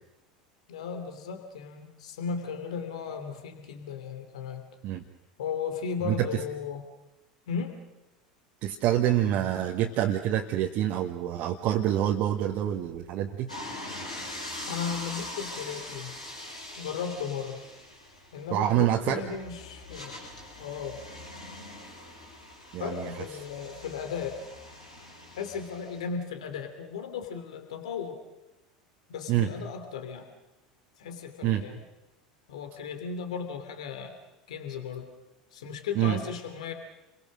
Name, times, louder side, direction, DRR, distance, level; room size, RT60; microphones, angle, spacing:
voice 1, 0.7-4.7 5.4-6.8 7.5-7.8 14.7-16.2 16.8-17.6 18.3-20.3 20.6-21.0 22.8-24.4 25.4-28.2 29.1-30.3 31.0-31.8 32.5-34.2 34.5-35.1 35.5-36.7, left 6 dB, 65° left, 6 dB, 2.8 m, -36 dB
voice 2, 8.6-13.5 18.5-19.2 22.7-23.1 29.3-29.5 31.4-31.6 36.0-36.2, right 11 dB, 45° right, 1 dB, 1.6 m, -26 dB
sound 1, 13.5-26.0, left 1 dB, 85° left, 6.0 m, -42 dB
30.0 x 22.5 x 6.4 m, 0.95 s
figure-of-eight pair, 75°, 4 cm